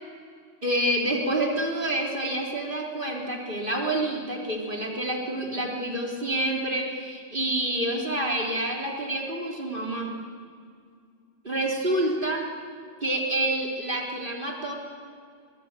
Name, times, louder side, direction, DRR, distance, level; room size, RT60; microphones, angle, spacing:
voice 1, 0.6-10.1 11.4-12.4 13.0-14.7, right 1 dB, 40° right, -1 dB, 3.7 m, -28 dB
24.0 x 21.0 x 8.2 m, 2.2 s
omnidirectional pair, 1.3 m